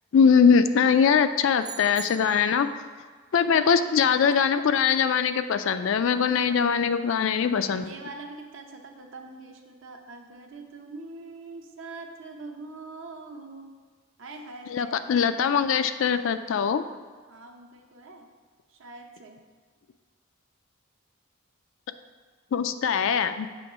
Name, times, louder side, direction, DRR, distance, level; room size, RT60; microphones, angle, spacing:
voice 1, 0.1-2.7 3.3-7.9 14.7-16.8 22.5-23.5, left 6 dB, 65° left, 10 dB, 0.3 m, -22 dB
sound 1, 1.6-2.7, right 6 dB, 20° right, 0.4 m, -42 dB
voice 2, 3.4-3.7 4.6-4.7 6.4-6.8 7.8-13.7 14.2-15.0 17.3-18.3 18.7-19.4, right 3 dB, 65° right, 3 dB, 0.7 m, -43 dB
7.0 x 3.1 x 6.0 m, 1.5 s
head